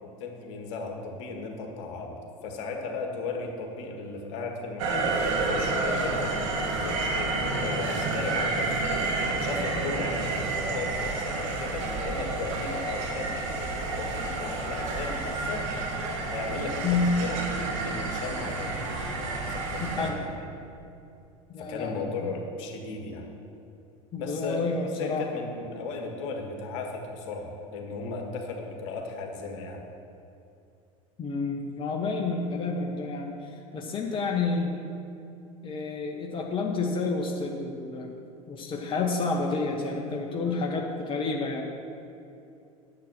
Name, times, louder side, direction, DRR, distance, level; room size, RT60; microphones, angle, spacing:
voice 1, 0.0-8.7 9.3-15.7 16.3-20.6 21.6-23.3 24.2-29.8 40.4-40.6, left 3 dB, 60° left, 2 dB, 1.7 m, -36 dB
sound 1, 4.8-20.1, right 3 dB, 60° right, 1.6 m, -30 dB
voice 2, 16.8-17.2 19.8-20.2 21.5-22.3 24.1-25.3 31.2-34.8 35.6-38.2 38.5-41.7, left 3 dB, 30° left, 0 dB, 1.2 m, -29 dB
10.5 x 7.4 x 5.6 m, 2.7 s
figure-of-eight pair, 75°, 18 cm